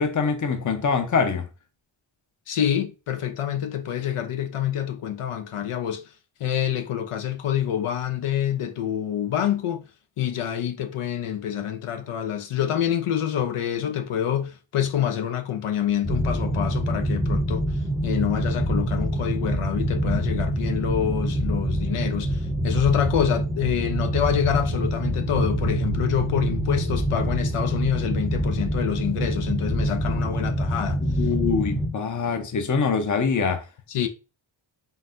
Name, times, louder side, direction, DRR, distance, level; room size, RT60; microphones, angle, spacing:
voice 1, 0.0-1.5 31.0-33.6, left 5 dB, 40° left, 0.7 m, -24 dB
voice 2, 2.5-6.0 6.4-9.9 10.2-31.0 33.9-34.1, left 10 dB, 85° left, 0.7 m, -27 dB
sound 1, 16.0-31.9, right 1 dB, 5° right, 0.5 m, -25 dB
4.2 x 3.9 x 2.5 m
wide cardioid pair, 95°, 50 cm